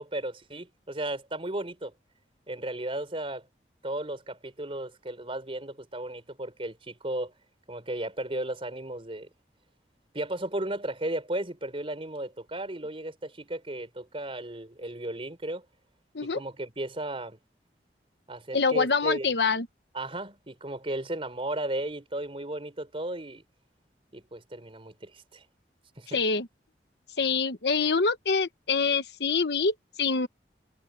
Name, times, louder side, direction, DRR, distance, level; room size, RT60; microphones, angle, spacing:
voice 1, 0.0-1.9 2.5-3.5 3.8-7.3 7.7-9.3 10.1-15.6 16.2-17.4 18.3-19.3 19.9-23.4 24.1-25.5 26.0-26.2, right 1 dB, 30° right, 4.0 m, -35 dB
voice 2, 18.5-19.7 26.1-26.5 27.2-30.3, left 4 dB, 70° left, 1.0 m, -25 dB
head